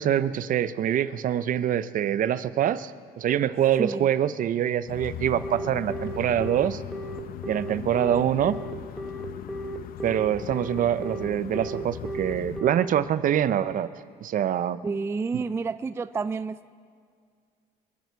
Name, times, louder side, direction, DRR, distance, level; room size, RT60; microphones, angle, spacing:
voice 1, 0.0-2.9 3.2-6.8 7.5-8.6 10.0-13.9 14.2-14.8 15.3-15.4, right 10 dB, 55° right, 15 dB, 0.6 m, -25 dB
sound 1, 4.9-12.6, left 11 dB, 60° left, 0.6 m, -39 dB
Telephone, 5.4-12.8, right 2 dB, ahead, 1.1 m, -35 dB
voice 2, 14.8-16.7, right 4 dB, 15° right, 14 dB, 0.3 m, -29 dB
26.5 x 11.0 x 4.6 m, 2.1 s
cardioid pair, 110°, 17 cm